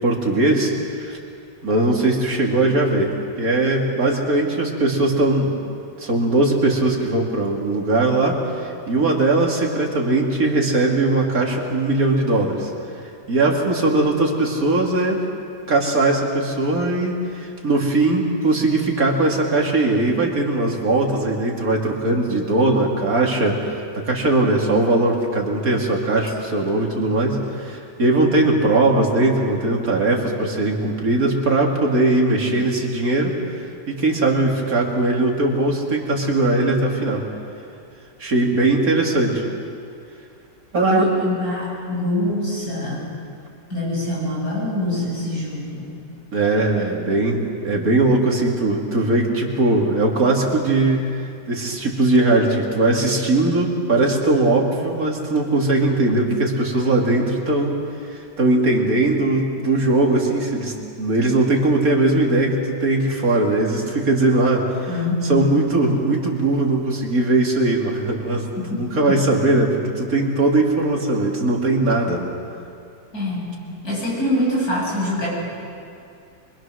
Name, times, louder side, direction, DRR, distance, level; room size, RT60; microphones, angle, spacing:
voice 1, 0.0-1.2 1.6-5.5 6.0-12.7 13.3-15.2 15.7-33.4 33.9-37.2 38.2-39.5 40.7-41.1 46.3-51.1 51.5-57.8 58.1-64.9 65.3-72.3, right 2 dB, 50° right, -1 dB, 3.1 m, -20 dB
voice 2, 40.9-43.1 43.7-46.0 64.9-65.4 68.6-69.2 73.1-75.3, left 1 dB, 50° left, -5 dB, 8.6 m, -25 dB
25.0 x 24.0 x 6.4 m, 2.4 s
omnidirectional pair, 2.0 m